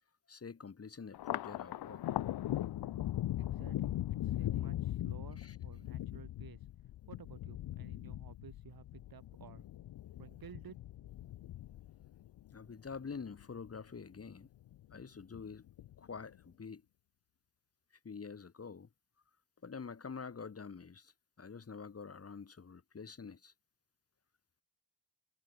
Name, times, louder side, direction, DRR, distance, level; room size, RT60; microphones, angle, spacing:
voice 1, 0.3-2.2 5.4-5.5 12.5-14.5 14.9-15.6 16.0-16.8 18.0-18.9 19.6-21.1 21.4-23.5, left 5 dB, 40° left, 3.4 m, -47 dB
Thunder, 1.1-13.8 14.2-15.0 15.3-16.2, left 13 dB, 80° left, 0.7 m, -40 dB
voice 2, 3.4-6.7 7.1-9.6 10.2-10.8 11.4-11.5, right 8 dB, 70° right, 5.3 m, -55 dB
wide cardioid pair, 115°, 37 cm